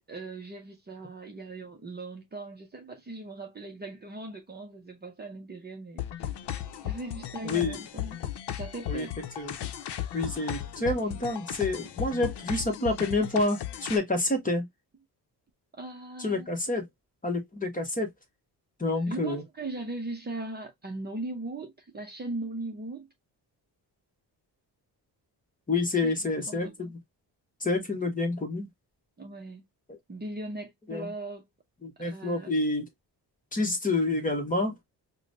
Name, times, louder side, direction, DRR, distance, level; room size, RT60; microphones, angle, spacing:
voice 1, 0.1-6.3 6.8-8.2 8.6-9.2 15.7-16.5 18.9-23.1 26.0-26.9 29.2-29.6 30.1-31.4 32.0-32.6, right 2 dB, 25° right, 0.6 m, -39 dB
sound 1, 6.0-14.0, left 11 dB, 80° left, 0.7 m, -36 dB
voice 2, 7.4-7.8 8.9-9.1 9.4-9.7 10.1-14.7 16.2-16.8 17.2-18.1 18.8-19.4 25.7-27.0 27.6-28.7 30.9-31.1 31.8-32.9 33.5-34.7, left 2 dB, 20° left, 1.0 m, -28 dB
4.9 x 2.2 x 2.5 m
wide cardioid pair, 140°, 40 cm